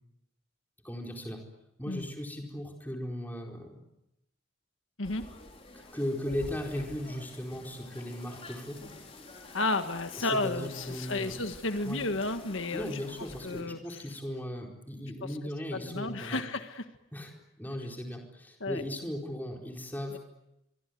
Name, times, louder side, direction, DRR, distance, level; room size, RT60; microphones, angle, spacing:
voice 1, 0.8-1.5 1.8-3.8 5.9-8.8 10.2-11.4 11.8-12.0 12.7-16.4 17.1-20.2, left 1 dB, 10° left, 1 dB, 4.5 m, -37 dB
sound 1, 5.0-13.6, left 2 dB, 30° left, 4.9 m, -48 dB
voice 2, 9.5-12.9 13.4-14.0 15.7-16.8 18.6-18.8, left 2 dB, 75° left, 8 dB, 1.6 m, -32 dB
25.5 x 24.0 x 9.4 m, 0.89 s
head